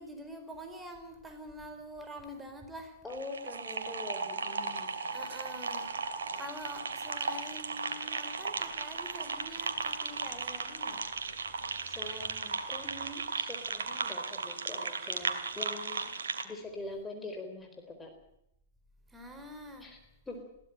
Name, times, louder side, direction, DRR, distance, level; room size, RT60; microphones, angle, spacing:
voice 1, 0.0-3.0 5.1-11.1 19.1-19.9, equal, 10° right, 5 dB, 4.6 m, -46 dB
voice 2, 3.0-4.9 11.9-16.0 16.4-18.1 19.8-20.0 20.3-20.5, left 2 dB, 10° left, 3 dB, 4.1 m, -43 dB
sound 1, 3.1-16.4, right 5 dB, 70° right, 2.4 m, -36 dB
21.5 x 16.5 x 9.1 m, 0.80 s
figure-of-eight pair, 105°, 0 cm